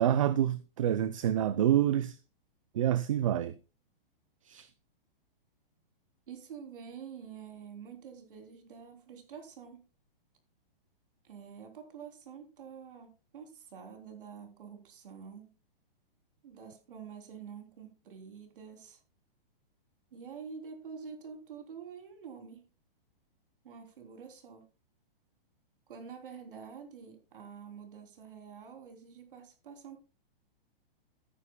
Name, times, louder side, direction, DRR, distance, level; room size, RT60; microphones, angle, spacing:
voice 1, 0.0-2.2 2.7-3.5 4.5-4.7, right 11 dB, 35° right, 0.5 m, -27 dB
voice 2, 6.3-9.8 11.2-15.5 16.4-19.0 20.1-22.6 23.6-24.6 25.9-30.0, right 6 dB, 65° right, 3.5 m, -47 dB
14.5 x 10.0 x 2.3 m
hypercardioid pair, 170°, 29 cm